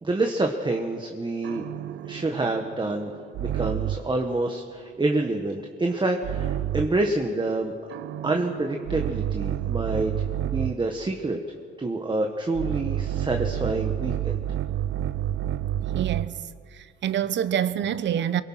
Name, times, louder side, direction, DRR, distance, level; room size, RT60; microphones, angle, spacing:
voice 1, 0.0-1.7 2.0-3.1 3.4-7.7 8.2-11.4 11.8-14.4, right 2 dB, 25° right, 1.7 m, -27 dB
sound 1, 1.4-4.2 6.2-7.1 7.9-10.9 12.5-16.4, right 11 dB, 85° right, 0.7 m, -29 dB
voice 2, 15.8-16.3 16.7-18.4, right 10 dB, 65° right, 1.0 m, -26 dB
24.0 x 22.0 x 5.9 m
cardioid pair, 90°, 20 cm